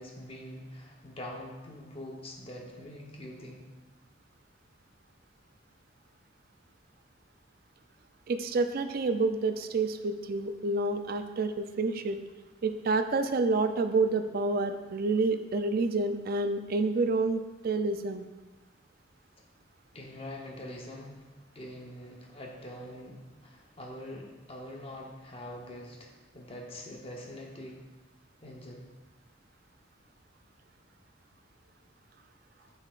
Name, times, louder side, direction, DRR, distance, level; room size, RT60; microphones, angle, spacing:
voice 1, 0.0-3.7 19.9-27.9 28.4-28.9 32.6-32.7, left 1 dB, 30° left, 0 dB, 0.9 m, -44 dB
voice 2, 8.3-12.2 12.6-18.3, right 3 dB, 50° right, 9 dB, 0.4 m, -28 dB
8.9 x 5.5 x 2.5 m, 1.2 s
head